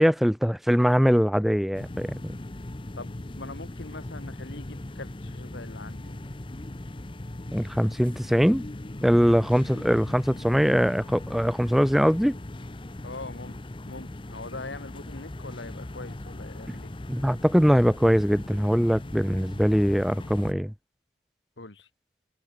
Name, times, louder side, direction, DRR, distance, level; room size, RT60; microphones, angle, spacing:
voice 1, 0.0-2.1 7.5-8.6 9.0-12.4 17.1-20.7, equal, ahead, 0.7 m, -22 dB
sound 1, 1.7-20.5, left 1 dB, 30° left, 0.8 m, -39 dB
voice 2, 3.0-6.2 9.5-9.8 13.0-13.6 13.9-16.9 21.6-21.9, left 2 dB, 85° left, 2.3 m, -42 dB
head